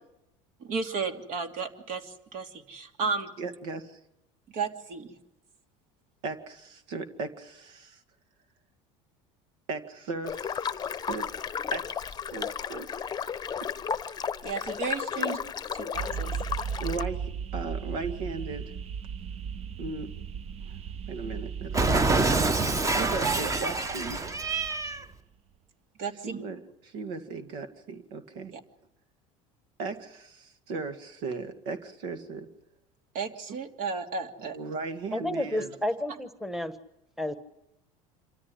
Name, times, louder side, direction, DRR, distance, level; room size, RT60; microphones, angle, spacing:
voice 1, 0.6-3.3 4.5-5.1 14.4-15.4 15.7-16.3 26.0-26.3 28.5-28.6 33.1-34.6, right 5 dB, 60° right, 5 dB, 2.9 m, -33 dB
voice 2, 3.4-4.0 6.2-8.0 9.7-11.3 11.7-13.3 13.6-13.7 14.1-14.4 15.2-15.4 16.8-18.7 19.8-20.1 20.7-20.8 21.1-22.3 22.9-24.2 26.2-28.5 29.8-32.5 33.5-33.6 34.5-35.7, right 4 dB, 75° right, 8 dB, 2.2 m, -37 dB
sound 1, 10.2-17.0, left 7 dB, 25° left, 0.9 m, -33 dB
sound 2, 15.9-25.2, right 7 dB, 40° right, 0.9 m, -37 dB
Cat, 21.7-25.0, right 3 dB, 20° right, 1.2 m, -26 dB
voice 3, 35.1-36.8 37.2-37.3, left 1 dB, ahead, 10 dB, 1.4 m, -31 dB
27.0 x 14.0 x 10.0 m, 0.85 s
supercardioid pair, 105°, 16 cm